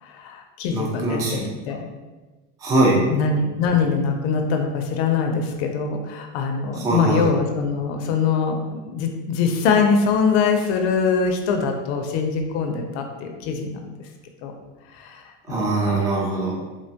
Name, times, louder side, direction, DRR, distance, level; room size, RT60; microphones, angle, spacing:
voice 1, 0.0-1.9 3.1-13.9 14.4-14.5 14.9-16.0, left 5 dB, 75° left, 4 dB, 0.5 m, -23 dB
voice 2, 0.7-1.3 2.6-3.0 6.8-7.3 15.5-16.8, right 2 dB, 10° right, -4 dB, 0.3 m, -22 dB
3.0 x 2.1 x 2.7 m, 1.2 s
supercardioid pair, 140°, 33 cm